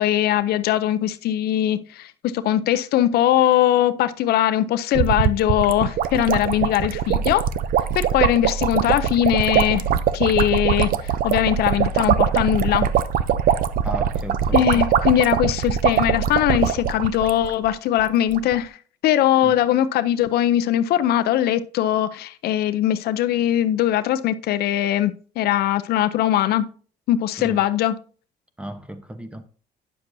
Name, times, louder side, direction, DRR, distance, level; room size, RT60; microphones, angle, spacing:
voice 1, 0.0-7.5 7.9-9.9 10.1-12.9 14.5-18.8 19.0-26.7 27.1-28.0, left 12 dB, 70° left, 0.5 m, -21 dB
sound 1, 4.9-17.7 18.0-18.1 18.3-18.5, right 9 dB, 60° right, 0.5 m, -22 dB
voice 2, 13.8-14.8 19.4-19.6 27.4-27.6 28.6-29.4, equal, 5° right, 0.9 m, -34 dB
9.5 x 6.7 x 2.7 m
cardioid pair, 110°, 17 cm